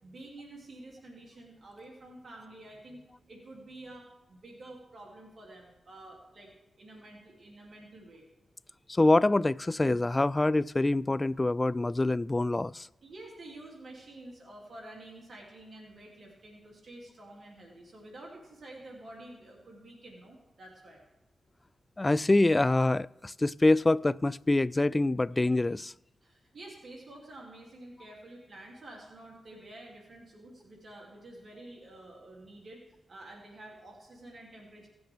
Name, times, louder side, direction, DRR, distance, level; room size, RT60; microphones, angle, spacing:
voice 1, 0.0-6.5 6.8-8.3 13.0-21.0 26.2-34.9, right 1 dB, 65° right, 2.8 m, -49 dB
voice 2, 8.9-12.9 22.0-25.9, left 2 dB, 25° left, 0.3 m, -25 dB
18.0 x 8.0 x 3.5 m
cardioid pair, 45°, 0 cm